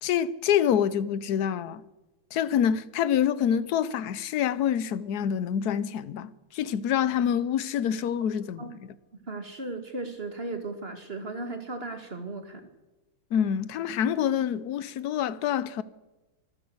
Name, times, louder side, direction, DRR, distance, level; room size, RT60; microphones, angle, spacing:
voice 1, 0.0-1.8 2.3-8.9 13.3-15.8, left 9 dB, 60° left, 1.3 m, -26 dB
voice 2, 9.3-12.6, right 2 dB, 30° right, 2.4 m, -36 dB
25.0 x 15.0 x 7.9 m
omnidirectional pair, 2.1 m